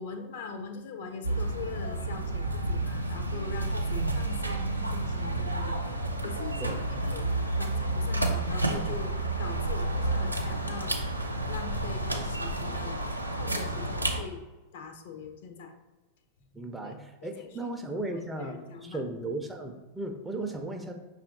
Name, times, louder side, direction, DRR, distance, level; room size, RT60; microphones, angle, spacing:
voice 1, 0.0-11.0 11.5-13.0 13.3-14.4 14.7-15.7 16.8-16.9 17.2-19.0, left 5 dB, 55° left, 6 dB, 0.5 m, -42 dB
sound 1, 1.2-14.2, right 2 dB, 85° right, 0.4 m, -30 dB
voice 2, 16.5-20.9, right 2 dB, 10° right, 4 dB, 0.5 m, -36 dB
5.5 x 2.4 x 3.9 m, 1.2 s
figure-of-eight pair, 90°, 0 cm